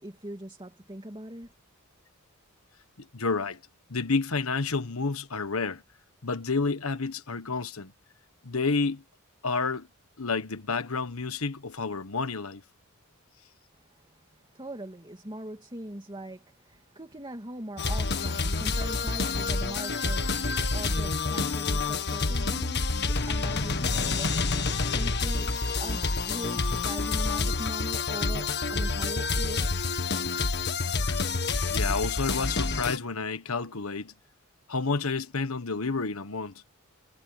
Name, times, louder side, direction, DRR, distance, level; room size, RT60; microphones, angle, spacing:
voice 1, 0.0-1.5 13.9-29.7, right 1 dB, 20° right, 2.5 m, -41 dB
voice 2, 3.0-3.6 3.9-5.8 6.2-7.9 8.4-9.0 9.4-9.9 10.2-12.6 31.1-31.2 31.7-34.1 34.7-36.6, left 4 dB, 75° left, 1.3 m, -30 dB
sound 1, 17.8-33.0, left 3 dB, 50° left, 1.7 m, -28 dB
head